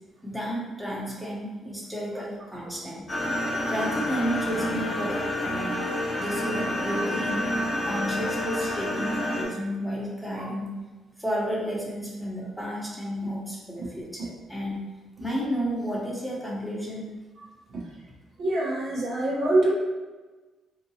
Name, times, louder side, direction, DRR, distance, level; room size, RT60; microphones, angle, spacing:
voice 1, 0.2-3.1 3.7-5.8 6.2-7.5 7.8-10.7 11.2-14.8 15.2-17.0, equal, ahead, -5 dB, 0.9 m, -32 dB
sound 1, 3.1-9.4, left 1 dB, 30° left, 1.0 m, -29 dB
voice 2, 18.4-19.7, right 2 dB, 65° right, -4 dB, 0.9 m, -25 dB
3.6 x 2.8 x 2.8 m, 1.2 s
cardioid pair, 90°, 0 cm